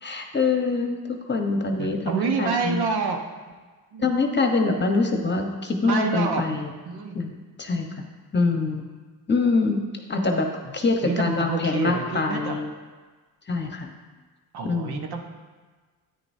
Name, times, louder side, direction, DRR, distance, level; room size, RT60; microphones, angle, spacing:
voice 1, 0.0-2.8 4.0-6.7 7.1-8.0 8.3-8.9 9.3-9.8 10.1-12.7 13.5-13.9 14.6-15.0, left 3 dB, 25° left, 3 dB, 1.1 m, -24 dB
voice 2, 1.8-3.2 3.5-3.6 3.9-4.1 5.8-6.6 6.9-7.2 11.0-12.6 14.5-15.3, right 4 dB, 60° right, 3 dB, 1.3 m, -28 dB
9.8 x 9.2 x 2.8 m, 1.3 s
supercardioid pair, 75°, 43 cm